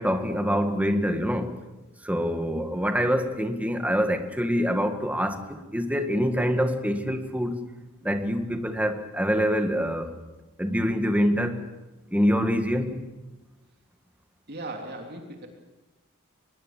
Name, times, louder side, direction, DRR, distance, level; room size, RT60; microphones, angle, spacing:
voice 1, 0.0-1.5 2.0-7.5 8.0-10.1 10.6-11.6 12.1-13.0, equal, 5° right, 1.9 m, -25 dB
voice 2, 14.5-15.5, right 2 dB, 50° right, 3.5 m, -37 dB
24.0 x 20.5 x 7.6 m
head